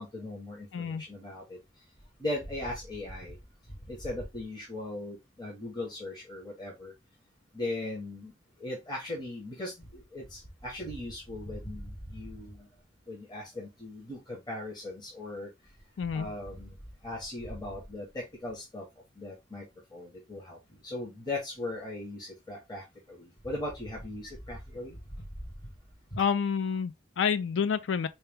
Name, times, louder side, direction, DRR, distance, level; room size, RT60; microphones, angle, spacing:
voice 1, 0.0-1.6 2.2-3.4 3.9-6.9 7.5-8.3 8.6-12.6 13.1-15.5 16.1-16.7 17.0-18.8 19.2-19.6 19.9-20.6 20.8-25.0 26.1-26.2, left 2 dB, 25° left, 1.1 m, -38 dB
voice 2, 0.7-1.0 16.0-16.3 26.2-28.1, left 6 dB, 85° left, 0.4 m, -29 dB
4.2 x 2.3 x 3.4 m
head